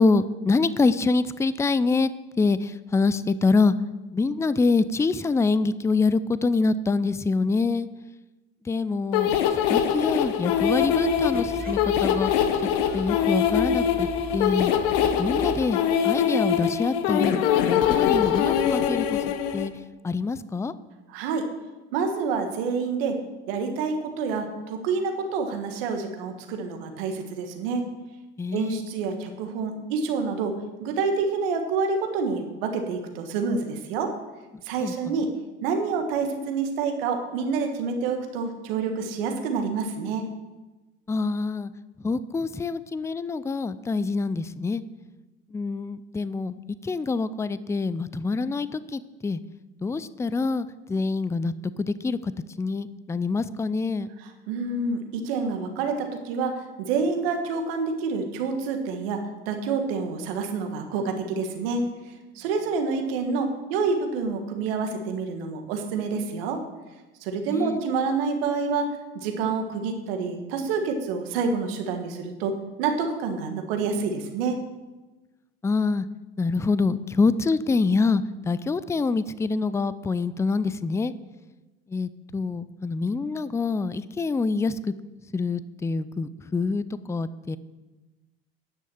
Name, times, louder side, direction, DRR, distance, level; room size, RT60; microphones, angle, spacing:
voice 1, 0.0-2.1 2.4-3.7 4.1-7.9 8.7-12.4 12.9-14.7 15.2-15.8 16.0-17.4 17.7-19.2 19.5-19.7 20.0-20.7 28.4-28.8 34.8-35.2 41.1-41.7 42.0-44.8 45.5-49.4 49.8-52.3 52.6-54.1 67.5-67.8 75.6-76.1 76.4-81.1 81.9-84.9 85.3-87.6, left 4 dB, 10° left, 16 dB, 0.4 m, -25 dB
sound 1, 9.1-19.7, left 9 dB, 75° left, 0.9 m, -23 dB
sound 2, 10.5-15.7, right 3 dB, 30° right, 1.8 m, -39 dB
voice 2, 21.1-21.5 21.9-23.2 23.5-27.9 28.5-30.5 30.8-34.1 34.6-35.3 35.6-40.2 54.2-59.2 59.5-61.9 62.3-66.6 67.2-72.5 72.8-74.6, right 4 dB, 75° right, 5 dB, 1.6 m, -28 dB
10.0 x 6.3 x 7.1 m, 1.1 s
hypercardioid pair, 80°, 29 cm